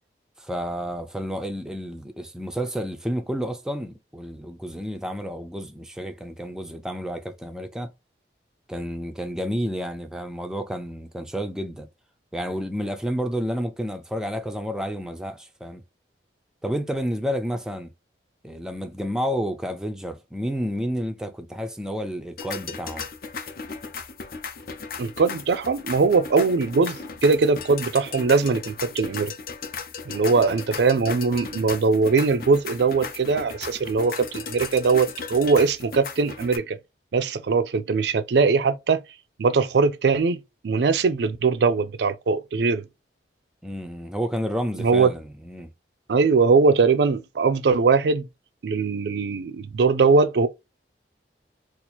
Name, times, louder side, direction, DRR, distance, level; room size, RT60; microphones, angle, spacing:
voice 1, 0.4-7.9 8.7-11.9 12.3-15.8 16.6-17.9 18.4-23.1 43.6-45.7, equal, 5° right, 0.4 m, -30 dB
sound 1, 22.4-36.6, left 5 dB, 55° left, 0.6 m, -36 dB
voice 2, 25.0-29.3 30.1-36.8 37.1-39.0 39.4-42.9 44.8-45.1 46.1-48.3 48.6-50.5, right 4 dB, 70° right, 0.4 m, -21 dB
2.8 x 2.5 x 4.2 m
head